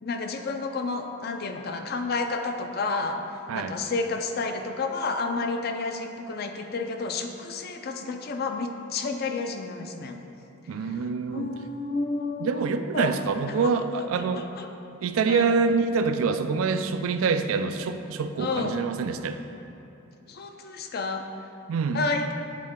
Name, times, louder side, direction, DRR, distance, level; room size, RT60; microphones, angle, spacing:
voice 1, 0.0-3.2 3.5-10.2 11.3-12.6 12.9-13.1 13.6-13.7 14.2-14.7 15.3-15.5 18.4-18.8 20.3-21.2 21.9-22.4, left 3 dB, 50° left, 5 dB, 0.4 m, -30 dB
voice 2, 10.7-11.5 12.4-14.5 15.0-19.4 21.7-22.0, right 5 dB, 85° right, 9 dB, 0.4 m, -26 dB
7.5 x 4.2 x 3.7 m, 2.9 s
head